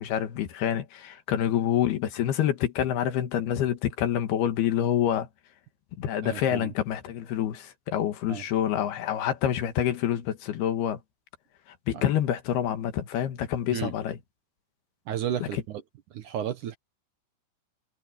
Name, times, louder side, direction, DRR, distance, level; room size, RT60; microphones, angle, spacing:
voice 1, 0.0-5.3 6.0-11.0 11.9-14.2 15.4-15.6, left 10 dB, 75° left, 3.5 m, -27 dB
voice 2, 6.2-6.7 8.3-8.4 11.9-12.0 13.7-13.9 15.1-15.8 16.1-16.8, right 10 dB, 65° right, 2.1 m, -32 dB
omnidirectional pair, 4.6 m